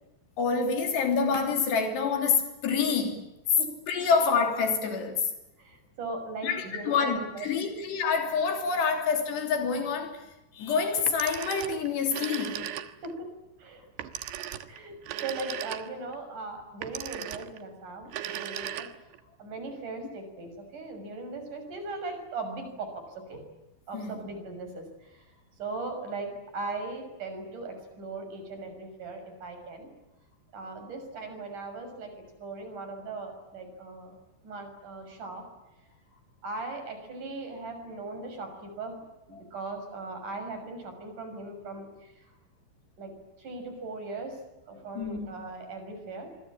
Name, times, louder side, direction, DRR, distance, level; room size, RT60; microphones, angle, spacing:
voice 1, 0.4-3.2 3.9-5.3 6.4-10.3 10.5-12.6 23.9-24.1 45.0-45.3, left 5 dB, 80° left, 5.2 m, -27 dB
voice 2, 5.6-7.5 13.0-13.3 13.6-13.9 14.7-14.9 15.2-18.9 19.2-23.4 23.9-29.9 30.5-34.2 34.4-35.4 36.1-39.0 39.3-42.3 43.0-43.1 43.4-44.4 44.7-46.3, right 3 dB, 50° right, 7.7 m, -39 dB
Telephone, 11.0-13.2 14.0-16.1 16.8-17.6 18.0-19.2, right 11 dB, 85° right, 3.5 m, -37 dB
26.5 x 24.0 x 8.7 m
omnidirectional pair, 4.8 m